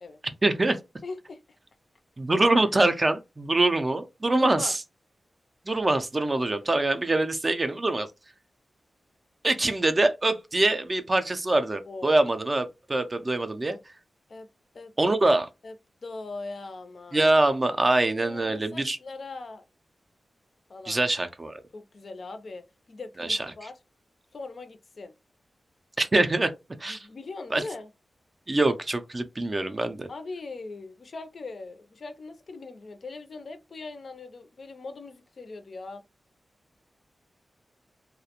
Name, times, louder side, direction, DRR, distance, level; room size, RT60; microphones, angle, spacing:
voice 1, 0.4-0.8 2.2-4.8 5.7-8.1 9.4-13.8 15.0-15.5 17.1-19.0 20.9-21.6 23.2-23.5 26.0-26.5 26.8-27.1 27.5-27.6 28.5-30.1, right 2 dB, 30° right, 0.3 m, -24 dB
voice 2, 1.0-1.6 4.4-4.8 11.9-12.3 14.3-14.5 14.7-14.9 15.6-15.7 16.0-17.3 18.2-19.6 20.7-21.0 21.7-23.7 24.3-25.1 26.9-27.9 30.1-36.0, left 3 dB, 55° left, 0.4 m, -40 dB
2.3 x 2.1 x 2.8 m
wide cardioid pair, 115°, 0 cm